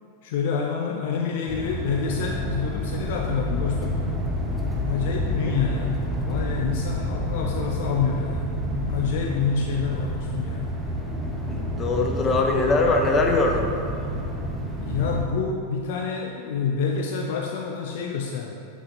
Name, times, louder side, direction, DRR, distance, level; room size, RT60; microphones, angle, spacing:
voice 1, 0.2-4.1 4.8-8.5 8.9-10.8 14.8-18.5, left 5 dB, 50° left, 2 dB, 0.5 m, -27 dB
sound 1, 1.5-15.3, left 1 dB, 5° right, 1.0 m, -29 dB
voice 2, 11.5-13.7, left 2 dB, 25° left, 2 dB, 0.9 m, -22 dB
9.5 x 6.1 x 2.8 m, 2.6 s
figure-of-eight pair, 90°, 0 cm